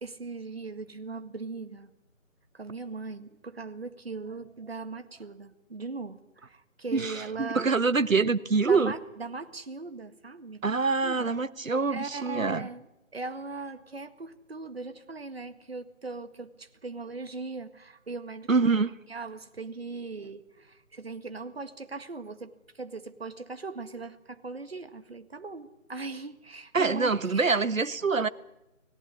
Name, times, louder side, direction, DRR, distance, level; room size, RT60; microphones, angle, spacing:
voice 1, 0.0-1.9 2.5-7.7 8.7-10.8 11.0-11.3 11.9-12.9 13.1-18.7 19.1-28.0, right 3 dB, 45° right, 1.9 m, -39 dB
voice 2, 6.9-8.9 10.6-12.7 18.5-18.9 26.7-28.3, right 4 dB, 70° right, 1.4 m, -25 dB
30.0 x 18.5 x 9.7 m
figure-of-eight pair, 165°, 41 cm